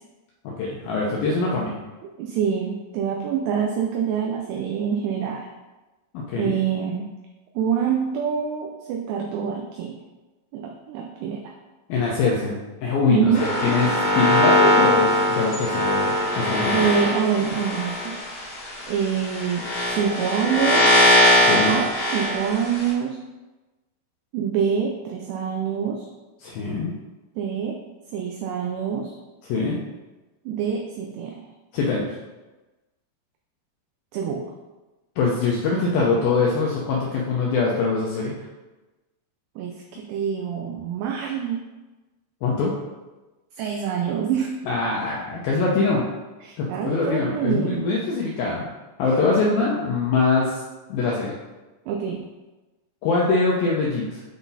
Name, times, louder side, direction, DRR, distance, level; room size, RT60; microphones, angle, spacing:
voice 1, 0.6-1.8 6.1-6.5 11.9-16.8 21.4-21.7 26.4-26.9 29.5-29.8 31.7-32.1 35.2-38.3 42.4-42.7 44.7-46.0 46.6-48.7 49.0-50.6 50.9-51.3 53.0-54.2, left 4 dB, 85° left, -3 dB, 2.1 m, -23 dB
voice 2, 2.0-5.5 6.4-7.1 7.6-10.0 10.5-11.5 13.1-13.5 16.7-18.1 18.9-21.0 21.5-23.2 24.3-26.1 27.4-27.8 28.1-29.1 30.5-31.4 34.1-34.4 39.6-41.6 43.6-44.5 46.4-47.8 51.9-52.2, right 7 dB, 80° right, 0 dB, 2.5 m, -26 dB
sound 1, 13.3-22.9, left 1 dB, 55° left, 3.1 m, -21 dB
8.3 x 3.9 x 4.0 m, 1.1 s
omnidirectional pair, 5.3 m